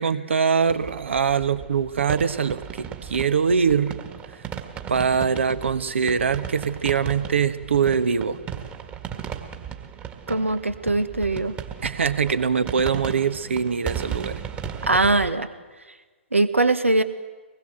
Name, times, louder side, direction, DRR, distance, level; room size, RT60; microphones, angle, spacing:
voice 1, 0.0-4.0 4.9-8.4 11.8-14.4, right 6 dB, 70° right, 13 dB, 1.3 m, -23 dB
sound 1, 0.7-15.3, right 8 dB, 20° right, 1.8 m, -36 dB
voice 2, 10.3-11.6 14.9-15.5 16.3-17.0, right 2 dB, 90° right, 11 dB, 1.5 m, -21 dB
24.0 x 20.0 x 7.8 m, 1.3 s
figure-of-eight pair, 125°, 7 cm